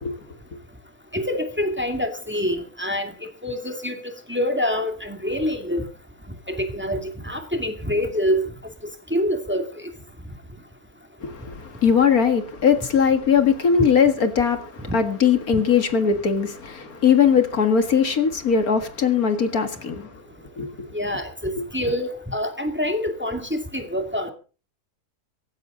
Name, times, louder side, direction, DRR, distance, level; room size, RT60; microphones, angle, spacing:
voice 1, 1.1-3.1 3.4-4.0 4.3-5.9 6.5-8.5 9.1-9.9 20.9-24.3, equal, 5° right, 2.2 m, -26 dB
voice 2, 11.2-20.1 20.6-20.9 21.6-21.7, left 6 dB, 65° left, 2.3 m, -20 dB
17.5 x 15.5 x 3.9 m
omnidirectional pair, 1.6 m